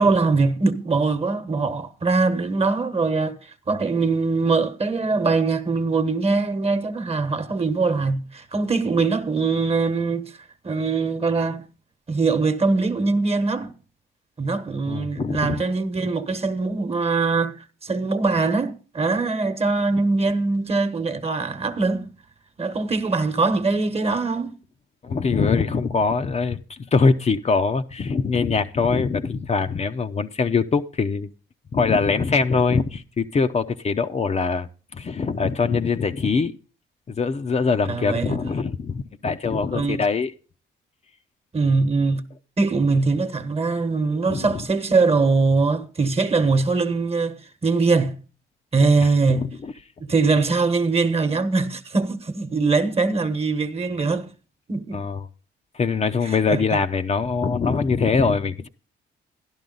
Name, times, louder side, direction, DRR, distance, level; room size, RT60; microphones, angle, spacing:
voice 1, 0.0-10.3 10.6-11.7 12.1-13.7 14.4-17.6 17.8-22.1 22.6-24.6 37.9-38.4 39.7-40.0 41.5-42.2 42.6-48.2 48.7-49.5 50.0-54.3 54.7-55.1 56.2-56.8, right 4 dB, 30° right, 1.2 m, -22 dB
voice 2, 14.9-15.6 25.0-31.3 31.7-36.5 37.1-40.3 44.3-44.5 49.0-49.7 54.9-55.2 55.7-58.7, left 5 dB, 35° left, 0.7 m, -23 dB
12.5 x 11.5 x 3.9 m
cardioid pair, 90°, 20 cm